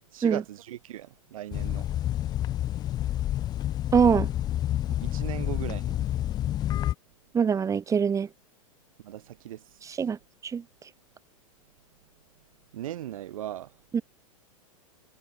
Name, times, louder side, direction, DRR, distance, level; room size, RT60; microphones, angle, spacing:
voice 1, 0.0-1.9 5.0-6.0 9.0-10.0 12.7-13.8, right 12 dB, 70° right, 4.0 m, -38 dB
sound 1, 1.5-6.9, left 12 dB, 20° left, 0.4 m, -29 dB
voice 2, 3.9-4.3 7.3-8.3 10.0-10.2 10.4-10.6 13.9-14.0, right 6 dB, 15° right, 1.7 m, -23 dB
hypercardioid pair, 115°, 18 cm